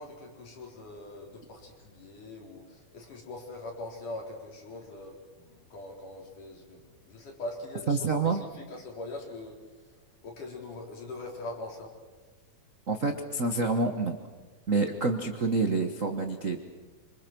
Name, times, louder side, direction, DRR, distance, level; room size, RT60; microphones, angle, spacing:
voice 1, 0.0-10.0 10.2-11.9, left 2 dB, 80° left, 0 dB, 5.7 m, -42 dB
voice 2, 7.9-8.4 12.9-14.2 14.7-16.6, right 3 dB, 65° right, 5 dB, 0.8 m, -27 dB
26.0 x 26.0 x 6.1 m, 1.3 s
omnidirectional pair, 3.6 m